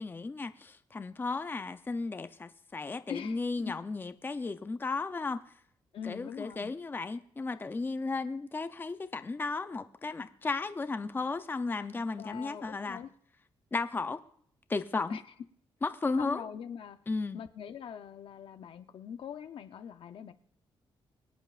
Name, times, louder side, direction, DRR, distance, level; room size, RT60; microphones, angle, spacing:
voice 1, 0.0-5.4 6.0-13.0 13.7-14.2 14.7-15.2 15.8-16.5 17.1-17.4, left 3 dB, 20° left, 0.6 m, -34 dB
voice 2, 3.1-3.8 5.9-6.7 12.2-13.1 15.1-15.2 16.2-17.0 17.3-20.3, left 8 dB, 65° left, 0.7 m, -42 dB
23.5 x 9.1 x 2.5 m
cardioid pair, 115°, 10 cm